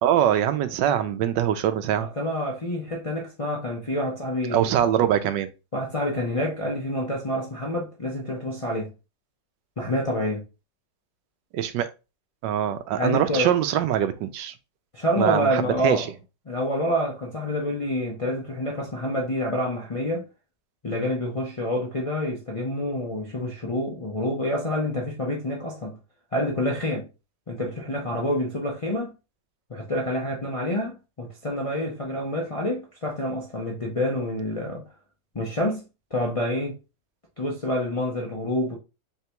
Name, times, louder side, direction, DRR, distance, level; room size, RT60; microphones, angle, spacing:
voice 1, 0.0-2.1 4.5-5.5 11.5-11.9 12.4-14.5 15.2-16.1, right 10 dB, 85° right, 1.3 m, -23 dB
voice 2, 2.2-4.7 5.7-8.9 9.8-10.4 13.0-13.5 14.9-16.1 16.5-20.2 20.8-26.0 26.3-27.1 27.5-29.1 29.7-34.8 35.3-35.8 36.1-36.8 37.4-38.8, left 1 dB, 55° left, 0.3 m, -27 dB
3.9 x 3.3 x 2.9 m
omnidirectional pair, 1.9 m